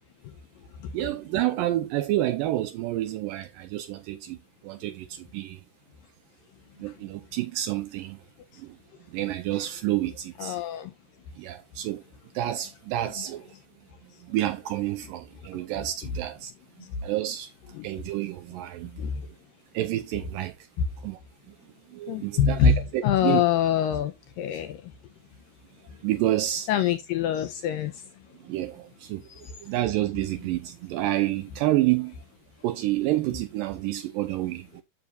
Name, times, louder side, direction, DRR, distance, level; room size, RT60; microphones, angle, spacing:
voice 1, 0.9-4.4 4.6-5.6 6.8-8.2 8.6-8.8 9.1-10.6 11.4-12.0 12.3-13.5 14.2-16.5 17.0-17.5 17.8-19.0 19.7-20.7 21.0-21.2 21.9-23.4 24.5-24.6 26.0-26.7 28.4-29.2 29.6-32.2 32.6-34.8, right 14 dB, 85° right, 1.9 m, -29 dB
voice 2, 10.4-10.9 17.8-17.9 19.0-19.1 22.1-22.8 23.0-24.1 24.4-24.8 26.7-27.9 29.3-29.4, left 8 dB, 80° left, 2.0 m, -24 dB
9.7 x 6.8 x 2.4 m
omnidirectional pair, 4.6 m